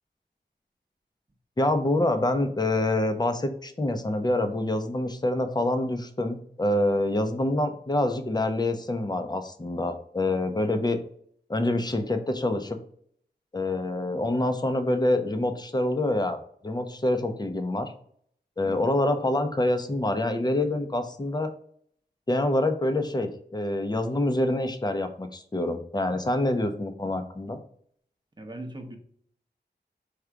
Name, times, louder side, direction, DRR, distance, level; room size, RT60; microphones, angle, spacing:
voice 1, 1.6-11.0 11.5-12.8 13.5-16.4 16.6-17.9 18.6-21.5 22.3-27.6, left 1 dB, 25° left, 7 dB, 0.6 m, -26 dB
voice 2, 18.6-18.9 28.4-29.0, right 1 dB, 25° right, 5 dB, 0.8 m, -39 dB
5.0 x 2.3 x 4.5 m, 0.63 s
wide cardioid pair, 75°, 18 cm